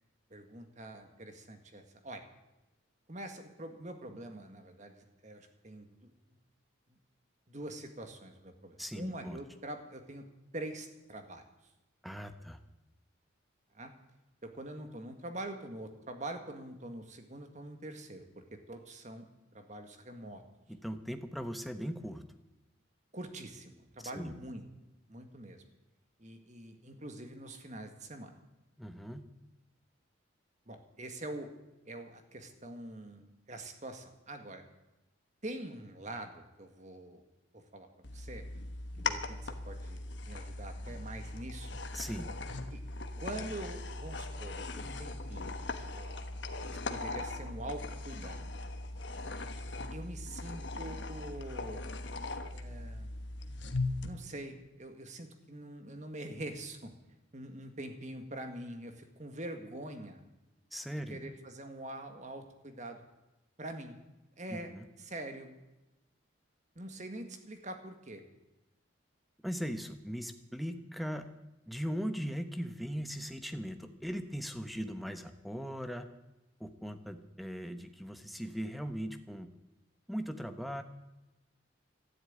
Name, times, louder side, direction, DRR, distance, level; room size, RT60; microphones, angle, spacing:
voice 1, 0.3-2.2 3.1-6.0 7.5-10.2 10.5-11.4 13.7-13.9 14.5-18.3 18.7-19.2 19.5-20.4 23.1-24.6 25.1-25.6 26.2-28.3 30.7-31.5 31.8-34.6 35.4-37.2 37.5-37.9 38.1-38.4 39.0-41.8 42.7-42.8 43.2-45.6 45.9-46.4 46.7-48.5 49.9-51.9 52.5-53.2 54.0-56.9 57.3-60.2 61.1-63.0 63.6-64.0 64.4-64.7 65.0-65.5 66.8-68.2, right 1 dB, 35° right, 6 dB, 1.9 m, -44 dB
voice 2, 8.8-9.4 12.0-12.6 20.7-22.2 24.1-24.3 28.8-29.3 41.9-42.3 60.7-61.2 64.5-64.9 69.4-71.3 71.7-76.1 76.6-79.5 80.1-80.8, equal, ahead, 8 dB, 0.9 m, -39 dB
sound 1, 38.0-54.1, left 2 dB, 60° left, 1.2 m, -39 dB
12.5 x 11.5 x 9.5 m, 1.0 s
head